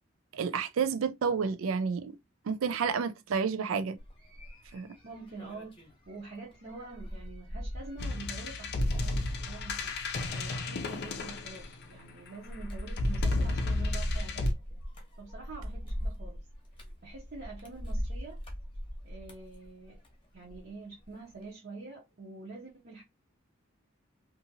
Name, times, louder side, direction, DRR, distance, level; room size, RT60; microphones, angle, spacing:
voice 1, 0.3-2.1 2.5-4.0 4.7-4.9, right 6 dB, 90° right, 0.4 m, -30 dB
sound 1, 4.0-20.7 21.0-21.5, equal, 25° left, 0.8 m, -40 dB
voice 2, 5.0-14.8 15.2-16.5 16.8-18.4 19.0-20.0 20.3-23.0, right 3 dB, 50° right, 0.7 m, -46 dB
sound 2, 8.0-12.1 12.9-14.5, left 2 dB, 55° left, 0.5 m, -32 dB
2.7 x 2.6 x 2.6 m
head